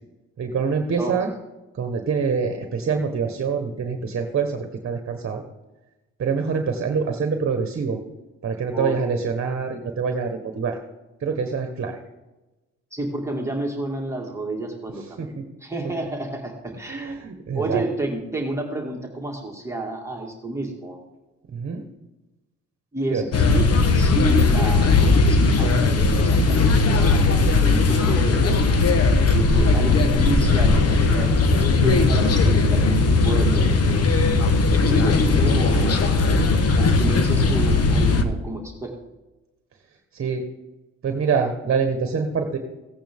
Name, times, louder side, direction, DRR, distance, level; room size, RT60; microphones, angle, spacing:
voice 1, 0.4-1.3 1.8-5.4 6.2-8.0 8.4-10.8 11.2-12.0 15.2-15.4 16.9-17.8 21.5-21.8 23.1-23.3 40.1-40.4 41.0-42.6, right 5 dB, 45° right, 5 dB, 1.3 m, -25 dB
voice 2, 12.9-15.3 15.6-17.2 17.5-21.0 22.9-28.7 29.3-31.4 31.8-34.2 34.9-36.4 36.8-38.9, right 2 dB, 10° right, -1 dB, 2.0 m, -30 dB
sound 1, 23.3-38.2, left 3 dB, 55° left, 1.2 m, -18 dB
16.0 x 8.9 x 3.6 m, 1.1 s
cardioid pair, 90°, 30 cm